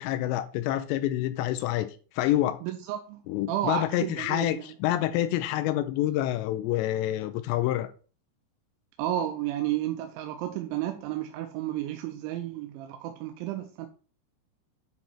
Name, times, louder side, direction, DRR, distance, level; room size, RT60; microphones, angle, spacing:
voice 1, 0.0-2.6 3.3-7.9, left 13 dB, 80° left, 2.7 m, -27 dB
voice 2, 2.6-3.2 3.5-4.6 9.0-13.9, right 12 dB, 90° right, 3.1 m, -32 dB
9.8 x 4.1 x 4.4 m
omnidirectional pair, 5.3 m